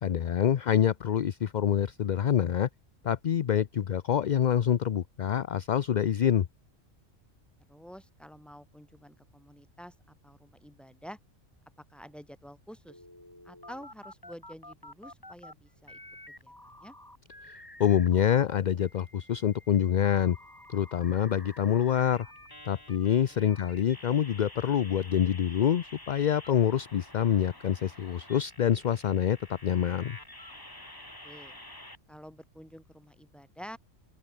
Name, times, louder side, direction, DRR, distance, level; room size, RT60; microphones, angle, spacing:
voice 1, 0.0-2.7 3.0-6.5 17.8-20.4 20.7-22.3 22.7-30.2, left 9 dB, 50° left, 0.5 m, -26 dB
voice 2, 7.7-11.2 11.8-13.0 13.4-16.0 16.3-16.9 22.9-23.0 23.3-23.5 31.2-31.6 32.1-33.8, equal, ahead, 4.1 m, -49 dB
sound 1, 12.9-15.5 15.8-18.4 18.8-32.0, left 1 dB, 15° left, 2.9 m, -50 dB
open air
omnidirectional pair, 1.3 m